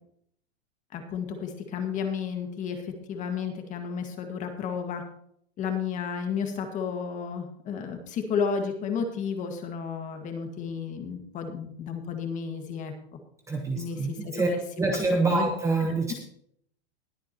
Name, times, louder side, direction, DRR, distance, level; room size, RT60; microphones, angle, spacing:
voice 1, 0.9-5.0 5.6-12.9 13.8-14.6 15.2-15.5, left 6 dB, 20° left, 5 dB, 1.8 m, -32 dB
voice 2, 13.5-14.5 14.8-16.1, right 3 dB, 10° right, 2 dB, 1.0 m, -26 dB
20.5 x 8.3 x 2.9 m, 0.68 s
supercardioid pair, 160°, 33 cm